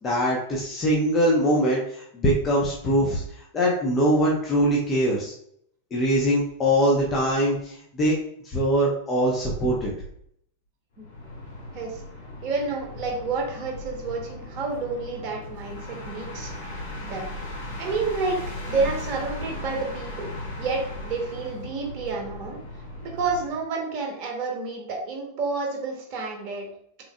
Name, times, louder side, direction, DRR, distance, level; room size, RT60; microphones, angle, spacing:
voice 1, 0.0-5.3 5.9-8.1 8.4-9.9, equal, 25° left, -3 dB, 0.8 m, -22 dB
sound 1, 11.0-23.6, left 1 dB, 55° left, 1.0 m, -37 dB
voice 2, 12.4-16.5 17.0-17.3 17.8-20.3 20.6-22.6 23.0-26.7, right 4 dB, 40° right, 1 dB, 0.9 m, -29 dB
3.6 x 3.5 x 2.2 m, 0.68 s
figure-of-eight pair, 90°, 0 cm